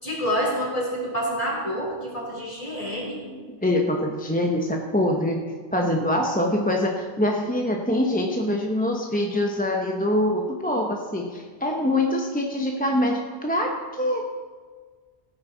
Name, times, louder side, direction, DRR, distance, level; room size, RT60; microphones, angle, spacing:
voice 1, 0.0-3.2, equal, 30° left, -4 dB, 4.0 m, -27 dB
voice 2, 3.6-5.4 5.7-14.2, left 1 dB, 10° left, 0 dB, 0.8 m, -24 dB
17.0 x 9.6 x 4.0 m, 1.5 s
omnidirectional pair, 1.2 m